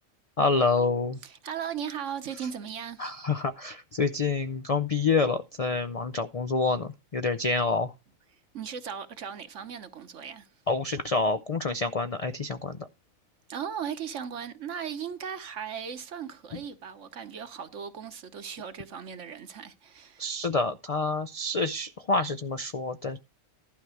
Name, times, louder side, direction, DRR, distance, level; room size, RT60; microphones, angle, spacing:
voice 1, 0.4-1.2 3.0-7.9 10.7-12.9 20.2-23.2, left 3 dB, 65° left, 0.3 m, -27 dB
voice 2, 1.2-3.2 8.5-10.5 13.5-20.3, right 8 dB, 60° right, 1.3 m, -37 dB
12.0 x 4.6 x 6.4 m
omnidirectional pair, 1.4 m